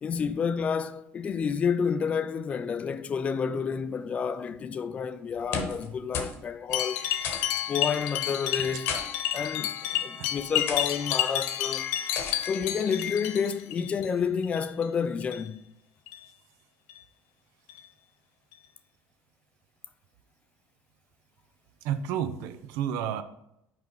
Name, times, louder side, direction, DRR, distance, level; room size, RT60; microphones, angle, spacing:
voice 1, 0.0-7.0 7.7-8.9 9.3-9.8 10.0-11.9 12.4-15.6, left 6 dB, 25° left, 0.3 m, -29 dB
sound 1, 5.3-5.9 6.1-6.4 6.7-6.8 7.2-7.6 8.6-9.0 9.8-10.0 10.7-10.9 12.2-12.5, left 5 dB, 50° left, 1.1 m, -34 dB
sound 2, 6.7-14.1 14.4-14.9 15.2-15.5 16.1-16.2 16.9-17.0 17.7-17.8 18.5-18.6, left 12 dB, 90° left, 0.6 m, -30 dB
voice 2, 21.8-23.2, right 9 dB, 75° right, 0.6 m, -31 dB
5.8 x 5.1 x 4.6 m
cardioid pair, 160°, 5 cm